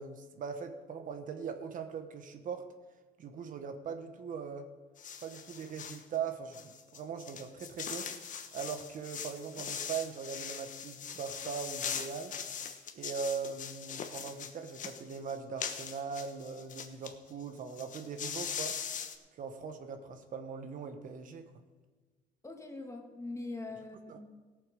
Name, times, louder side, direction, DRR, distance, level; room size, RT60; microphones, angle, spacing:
voice 1, 0.0-2.7 3.2-4.7 5.2-8.1 8.5-12.4 12.9-18.8 19.4-21.5 24.1-24.3, right 6 dB, 50° right, 7 dB, 1.2 m, -40 dB
sound 1, 5.0-6.0 6.5-17.1 17.4-17.5 17.7-19.2, left 7 dB, 50° left, 1.2 m, -41 dB
voice 2, 22.4-24.3, left 2 dB, 15° left, 3 dB, 1.8 m, -42 dB
16.5 x 7.1 x 5.3 m, 1.3 s
cardioid pair, 110°, 17 cm